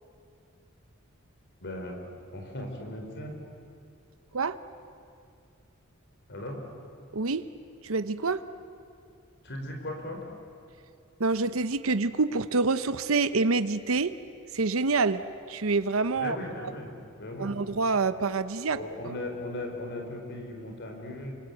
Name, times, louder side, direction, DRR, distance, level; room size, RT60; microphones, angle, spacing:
voice 1, 1.6-2.0 2.3-3.3 6.3-6.6 9.4-10.2 16.1-16.9 17.2-17.5 18.7-21.4, left 1 dB, 55° left, 2 dB, 4.6 m, -37 dB
voice 2, 7.1-7.4 7.8-8.4 11.2-14.1 14.5-15.2 15.5-16.7 17.4-18.8, right 3 dB, 75° right, 12 dB, 0.8 m, -27 dB
28.5 x 25.5 x 8.0 m, 2.4 s
head